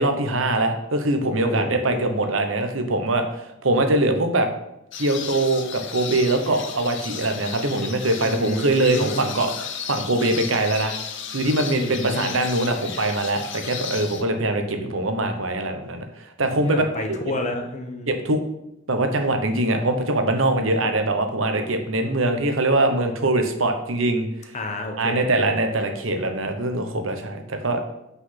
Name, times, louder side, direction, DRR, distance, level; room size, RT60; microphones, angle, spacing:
voice 1, 0.0-3.2 3.6-4.5 5.0-9.5 9.9-10.9 11.3-16.0 16.4-17.2 18.1-18.4 18.9-24.3 25.0-27.9, right 2 dB, 80° right, 6 dB, 1.1 m, -22 dB
voice 2, 1.4-2.0 8.2-9.3 11.7-12.3 16.4-18.1 24.5-25.6, left 1 dB, 35° left, 4 dB, 1.2 m, -30 dB
sound 1, 4.9-14.2, left 7 dB, 65° left, 0.9 m, -34 dB
5.9 x 5.8 x 5.9 m, 0.85 s
head